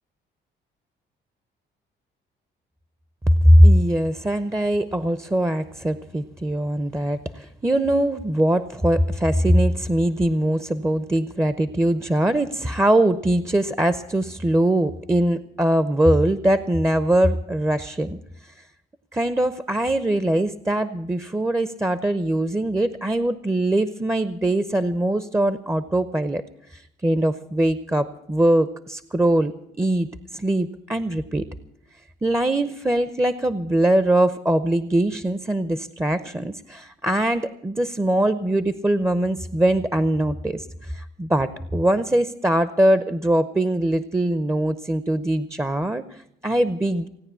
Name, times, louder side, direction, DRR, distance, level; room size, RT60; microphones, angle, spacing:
voice 1, 3.3-18.5 19.1-26.4 26.7-31.5 32.2-47.1, right 1 dB, 15° right, 13 dB, 0.7 m, -21 dB
17.5 x 9.6 x 8.3 m, 0.78 s
cardioid pair, 90°, 20 cm